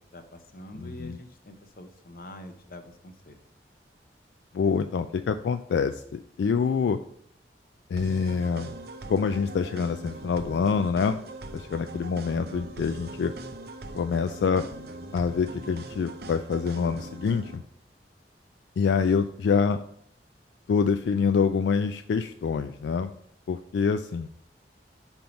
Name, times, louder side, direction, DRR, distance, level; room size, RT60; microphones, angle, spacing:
voice 1, 0.1-3.4, left 1 dB, 55° left, 7 dB, 0.8 m, -45 dB
voice 2, 0.7-1.2 4.5-7.0 7.9-8.7 9.1-11.2 11.5-13.3 13.9-14.7 15.1-17.6 18.8-19.8 20.7-23.1 23.5-24.3, left 5 dB, 80° left, 9 dB, 0.3 m, -26 dB
sound 1, 8.0-17.6, right 2 dB, 60° right, 0.6 m, -41 dB
5.5 x 4.5 x 5.1 m, 0.66 s
head